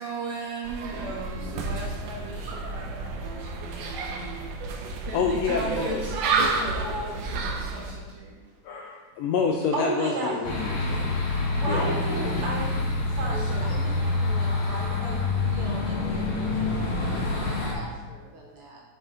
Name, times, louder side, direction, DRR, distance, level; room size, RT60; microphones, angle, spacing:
voice 1, 0.0-4.5 5.1-8.4 11.8-11.9 12.3-12.5 13.5-13.6, right 3 dB, 70° right, 2.0 m, -37 dB
sound 1, 0.6-7.9, right 3 dB, 90° right, 2.3 m, -30 dB
voice 2, 0.9-1.5 9.7-10.4 11.4-12.7 13.1-18.8, right 2 dB, 55° right, 2.0 m, -35 dB
voice 3, 5.1-6.0 6.3-6.5 8.6-11.2 11.7-11.9 13.7-14.1, left 6 dB, 85° left, 1.4 m, -28 dB
train leaving varde, 10.4-17.7, left 3 dB, 50° left, 1.9 m, -27 dB
8.5 x 5.7 x 3.7 m
omnidirectional pair, 3.5 m